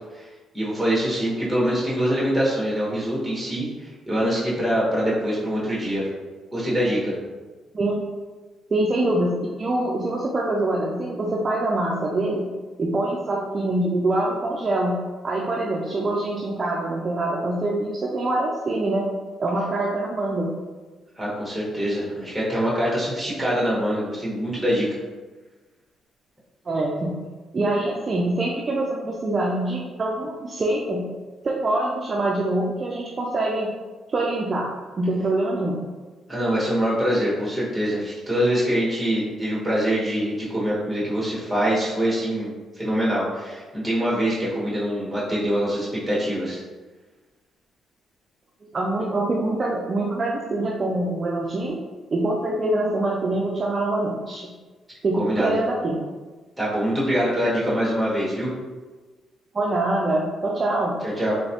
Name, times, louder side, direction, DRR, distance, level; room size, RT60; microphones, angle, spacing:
voice 1, 0.5-6.1 6.5-7.2 21.2-25.0 36.3-42.5 42.8-46.6 55.1-55.6 56.6-58.5 61.0-61.3, equal, 5° right, -6 dB, 1.5 m, -24 dB
voice 2, 8.7-12.5 12.8-20.5 26.7-31.2 31.4-33.7 34.1-35.8 48.7-51.8 52.1-54.5 55.0-56.0 59.5-61.1, right 2 dB, 35° right, -2 dB, 0.4 m, -25 dB
3.5 x 3.0 x 2.8 m, 1.3 s
cardioid pair, 90°, 0 cm